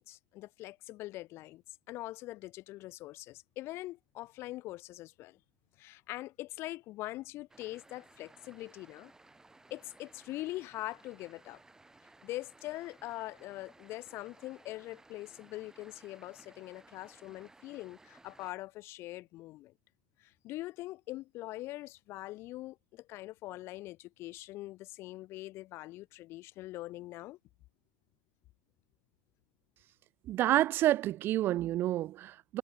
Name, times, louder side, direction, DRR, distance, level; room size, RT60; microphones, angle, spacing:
voice 1, 0.0-5.4 5.8-9.1 9.7-11.6 12.2-19.7 20.2-27.4, left 17 dB, 40° left, 2.4 m, -43 dB
sound 1, 7.5-18.5, right 2 dB, 10° right, 6.0 m, -60 dB
voice 2, 30.3-32.6, right 14 dB, 35° right, 0.5 m, -29 dB
figure-of-eight pair, 80°, 6 cm